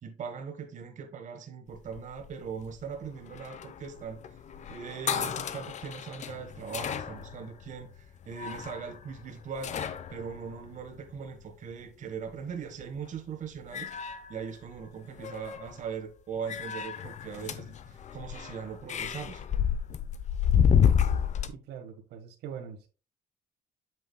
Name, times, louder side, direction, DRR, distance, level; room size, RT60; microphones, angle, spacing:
voice 1, 0.0-4.4 4.7-9.8 10.1-13.9 14.3-19.4, right 6 dB, 45° right, 1.4 m, -40 dB
sound 1, 1.7-11.5 12.8-13.2 13.6-14.9 15.1-15.8 16.5-21.5, left 8 dB, 45° left, 0.7 m, -31 dB
voice 2, 21.7-22.9, right 7 dB, 85° right, 1.5 m, -42 dB
8.1 x 6.2 x 2.2 m
cardioid pair, 110°, 17 cm